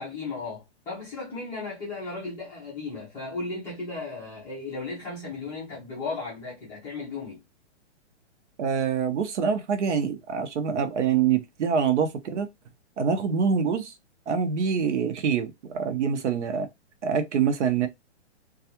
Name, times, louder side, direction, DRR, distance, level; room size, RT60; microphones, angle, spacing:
voice 1, 0.0-7.4 10.0-10.2, left 3 dB, 10° left, 0.4 m, -35 dB
voice 2, 8.6-12.5 13.0-13.9 14.3-16.7 17.0-17.9, right 6 dB, 75° right, 0.8 m, -25 dB
2.3 x 2.3 x 2.8 m
hypercardioid pair, 160°, 35 cm